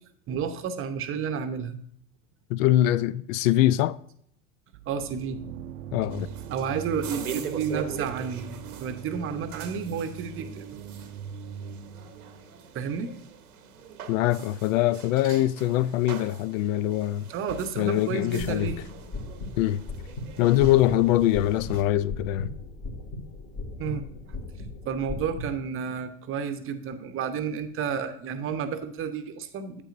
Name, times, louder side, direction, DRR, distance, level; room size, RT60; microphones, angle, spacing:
voice 1, 0.3-1.8 4.9-5.5 6.5-8.5 8.8-10.7 12.7-13.1 17.3-18.8 23.8-24.0 24.9-29.8, right 6 dB, 30° right, 0.8 m, -31 dB
voice 2, 2.5-4.0 5.9-6.3 14.1-17.3 17.8-18.7 19.6-19.8 20.4-22.5, left 14 dB, 65° left, 0.5 m, -23 dB
sound 1, 4.7-12.6, right 8 dB, 60° right, 0.6 m, -41 dB
sound 2, 6.1-21.8, right 7 dB, 90° right, 1.0 m, -43 dB
sound 3, 18.4-25.5, left 2 dB, 40° left, 2.0 m, -38 dB
9.0 x 8.2 x 2.6 m
hypercardioid pair, 100°, 43 cm